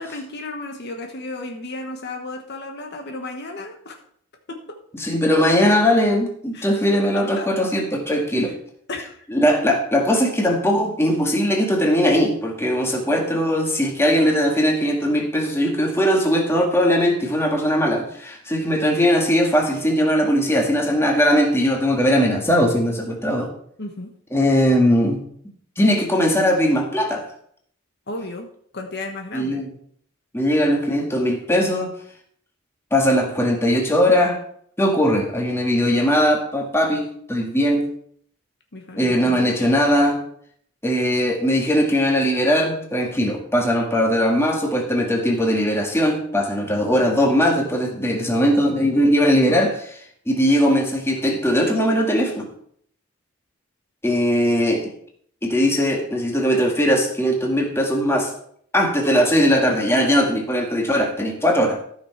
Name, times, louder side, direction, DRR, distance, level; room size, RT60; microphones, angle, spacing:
voice 1, 0.0-4.0 4.5-4.8 6.5-7.7 8.4-8.5 8.9-9.3 23.8-24.1 28.1-28.5 28.7-29.6 38.7-39.5, left 2 dB, 55° left, 3 dB, 1.3 m, -34 dB
voice 2, 4.9-8.5 9.3-23.5 24.3-25.2 25.8-27.3 29.3-29.7 30.3-31.9 32.9-34.4 34.8-37.9 39.0-40.2 40.8-50.0 50.3-52.5 54.0-54.9 55.4-58.3 58.7-61.8, equal, 10° left, 1 dB, 1.9 m, -19 dB
14.0 x 6.1 x 4.5 m, 0.64 s
head